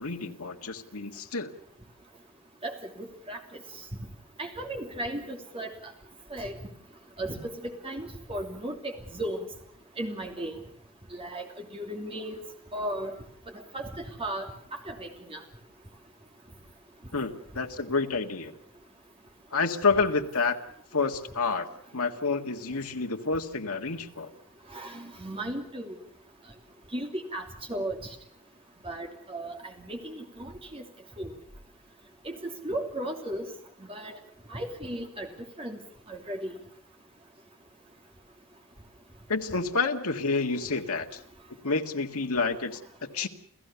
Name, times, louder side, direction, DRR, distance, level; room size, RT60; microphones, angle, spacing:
voice 1, 0.0-1.5 17.1-18.5 19.5-20.6 20.9-21.7 21.9-24.3 39.3-41.1 41.6-42.8 43.1-43.3, left 4 dB, 80° left, 5 dB, 1.8 m, -28 dB
voice 2, 2.6-3.4 4.4-5.9 6.3-6.5 7.2-9.5 10.0-10.5 11.1-12.4 12.7-13.1 13.5-15.4 24.7-25.9 26.9-28.1 28.8-30.8 31.2-31.3 32.2-32.3 32.6-33.5 33.8-34.2 34.5-35.3 35.6-35.8 36.1-36.6, right 1 dB, 25° right, 3 dB, 3.0 m, -36 dB
28.5 x 15.5 x 7.0 m, 0.66 s
head